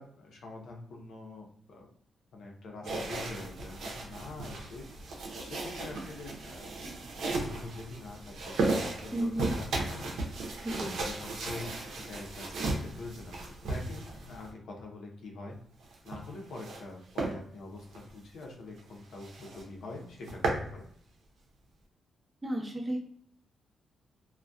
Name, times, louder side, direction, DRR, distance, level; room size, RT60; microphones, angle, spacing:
voice 1, 0.0-1.9 2.3-5.1 5.4-6.7 7.2-10.4 10.7-13.4 13.6-15.6 16.0-20.9, left 2 dB, 75° left, 1 dB, 0.6 m, -45 dB
sound 1, 2.8-14.5 15.8-16.8 17.2-17.4 17.8-18.0 18.4-18.5 18.8-18.9 19.2-19.6 20.0-20.7, right 2 dB, 90° right, 0.6 m, -35 dB
voice 2, 9.1-9.5 10.6-11.0 22.4-23.0, right 1 dB, 15° right, -2 dB, 0.8 m, -33 dB
2.5 x 2.1 x 2.2 m, 0.65 s
cardioid pair, 110°, 0 cm